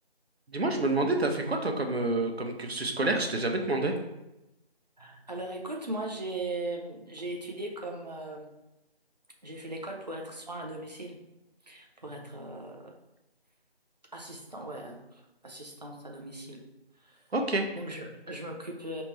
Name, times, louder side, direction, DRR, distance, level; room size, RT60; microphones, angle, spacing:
voice 1, 0.5-3.9 17.3-17.7, right 2 dB, 75° right, 3 dB, 0.8 m, -28 dB
voice 2, 5.0-8.5 9.4-11.3 11.6-12.9 14.1-16.6 17.0-17.3 17.7-19.0, right 2 dB, 40° right, 1 dB, 0.6 m, -39 dB
4.1 x 3.3 x 3.2 m, 0.93 s
figure-of-eight pair, 165°, 31 cm